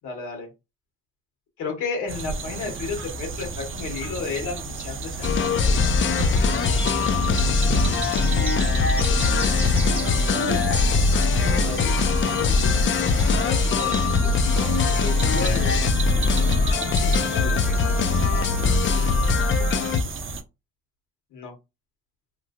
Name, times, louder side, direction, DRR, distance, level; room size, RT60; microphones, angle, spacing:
voice 1, 0.0-0.5 1.6-5.8 11.4-12.0 12.5-15.7 16.6-17.6 21.3-21.5, left 5 dB, 80° left, 2 dB, 1.4 m, -33 dB
sound 1, 2.1-20.4, right 4 dB, 40° right, 0.6 m, -33 dB
sound 2, 5.2-20.0, left 4 dB, 40° left, 0.4 m, -21 dB
sound 3, 5.6-18.8, right 1 dB, 5° right, 0.8 m, -34 dB
3.0 x 2.7 x 2.5 m, 0.26 s
cardioid pair, 90°, 30 cm